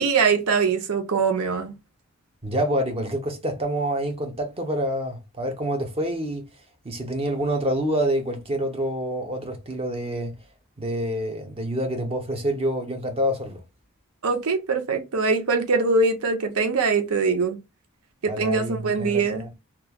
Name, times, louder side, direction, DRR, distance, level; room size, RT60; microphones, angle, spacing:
voice 1, 0.0-1.7 14.2-17.6 18.2-19.5, right 4 dB, 80° right, 0.7 m, -22 dB
voice 2, 2.4-6.5 6.8-10.4 10.8-13.6 18.3-19.5, equal, 25° right, 0.6 m, -27 dB
3.1 x 2.3 x 2.3 m
head